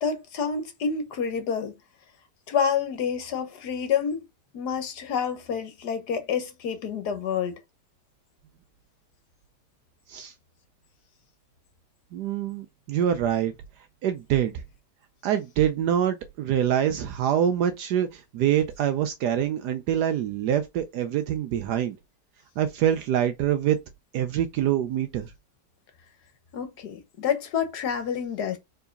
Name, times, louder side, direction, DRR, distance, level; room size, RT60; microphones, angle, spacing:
voice 1, 0.0-1.7 2.5-4.2 4.5-7.6 26.5-28.6, left 7 dB, 70° left, 1.6 m, -28 dB
voice 2, 12.1-13.5 14.0-14.5 15.2-22.0 22.6-23.8 24.1-25.3, right 10 dB, 75° right, 1.2 m, -25 dB
4.7 x 3.9 x 5.1 m
omnidirectional pair, 1.8 m